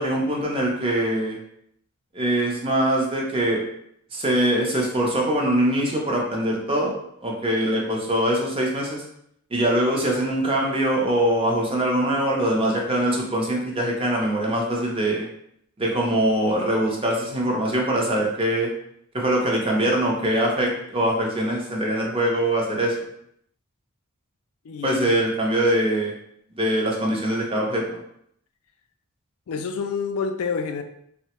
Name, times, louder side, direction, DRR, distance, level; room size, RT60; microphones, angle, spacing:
voice 1, 0.0-1.4 2.1-3.6 4.1-6.9 7.2-9.0 9.5-15.3 15.8-18.7 19.1-22.9 24.8-26.1 26.5-28.0, right 1 dB, 25° right, -1 dB, 0.5 m, -23 dB
voice 2, 24.6-25.2 29.5-30.8, left 5 dB, 80° left, 6 dB, 0.3 m, -28 dB
3.1 x 2.1 x 2.9 m, 0.72 s
head